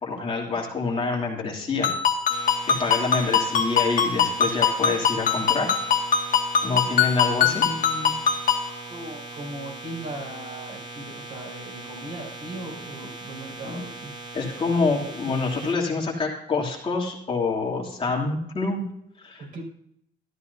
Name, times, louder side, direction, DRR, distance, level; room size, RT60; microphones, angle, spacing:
voice 1, 0.0-1.9 2.7-5.7 6.6-7.6 13.6-13.8 14.3-18.8 19.2-19.4, left 4 dB, 30° left, -2 dB, 2.9 m, -26 dB
Ringtone, 1.8-8.7, left 7 dB, 55° left, 1.9 m, -23 dB
sound 1, 2.3-15.7, right 2 dB, 30° right, 1.9 m, -40 dB
voice 2, 7.4-8.2 8.9-14.1 19.4-19.6, right 1 dB, 55° right, -1 dB, 5.6 m, -38 dB
13.5 x 12.5 x 2.7 m, 0.71 s
cardioid pair, 110°, 17 cm